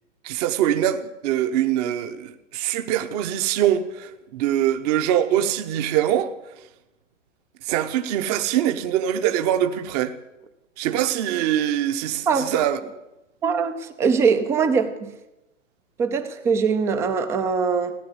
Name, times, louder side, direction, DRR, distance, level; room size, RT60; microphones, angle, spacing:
voice 1, 0.2-6.3 7.6-10.1 10.8-12.8, right 11 dB, 30° right, 0.9 m, -23 dB
voice 2, 13.4-15.1 16.0-17.9, right 5 dB, 5° right, 0.4 m, -22 dB
16.0 x 10.5 x 8.0 m
hypercardioid pair, 140°, 38 cm